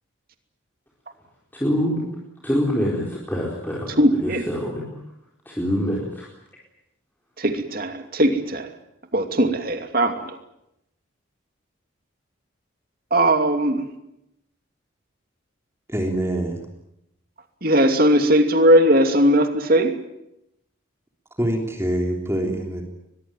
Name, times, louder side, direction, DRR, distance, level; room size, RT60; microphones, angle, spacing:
voice 1, 1.5-2.1 2.4-3.9 4.2-4.8 5.5-6.3, equal, 10° left, -4 dB, 4.4 m, -25 dB
voice 2, 4.0-4.5 7.4-8.7 9.1-10.4 13.1-14.0 17.6-20.0, right 1 dB, 45° right, 6 dB, 2.7 m, -19 dB
voice 3, 15.9-16.7 21.4-22.8, right 1 dB, 15° right, 2 dB, 3.5 m, -25 dB
23.0 x 22.0 x 9.1 m, 0.83 s
head